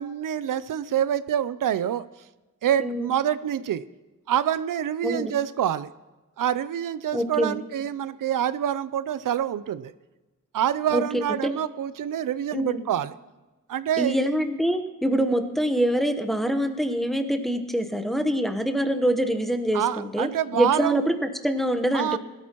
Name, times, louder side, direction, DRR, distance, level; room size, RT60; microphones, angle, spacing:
voice 1, 0.0-2.0 2.6-3.8 4.3-5.9 6.4-9.9 10.5-13.1 13.7-14.2 19.7-21.0 21.9-22.2, right 10 dB, 75° right, 15 dB, 0.5 m, -26 dB
voice 2, 2.8-3.1 5.0-5.3 7.1-7.6 10.9-11.5 12.5-12.9 14.0-22.2, right 1 dB, ahead, 6 dB, 1.0 m, -25 dB
20.5 x 13.0 x 3.0 m, 1.1 s
wide cardioid pair, 135°, 33 cm